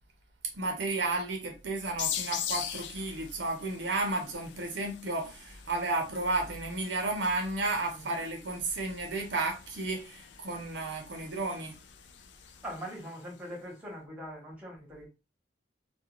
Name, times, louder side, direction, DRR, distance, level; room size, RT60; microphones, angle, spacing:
voice 1, 0.5-11.8, right 2 dB, 65° right, 0.6 m, -32 dB
sound 1, 2.0-13.3, left 9 dB, 65° left, 0.3 m, -42 dB
voice 2, 7.9-8.2 12.6-15.1, equal, 5° right, 1.0 m, -42 dB
2.3 x 2.2 x 2.9 m
head